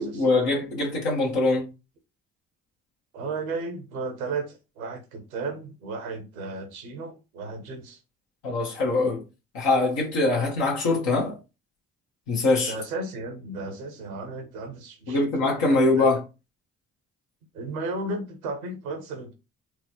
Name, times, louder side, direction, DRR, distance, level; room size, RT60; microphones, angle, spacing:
voice 1, 0.0-1.7 8.4-9.2 9.5-11.4 12.3-12.7 15.1-16.2, left 2 dB, 75° left, 1.2 m, -23 dB
voice 2, 3.1-8.0 12.7-16.2 17.5-19.3, right 3 dB, 85° right, 0.8 m, -34 dB
4.5 x 2.1 x 2.9 m
hypercardioid pair, 40°, 42 cm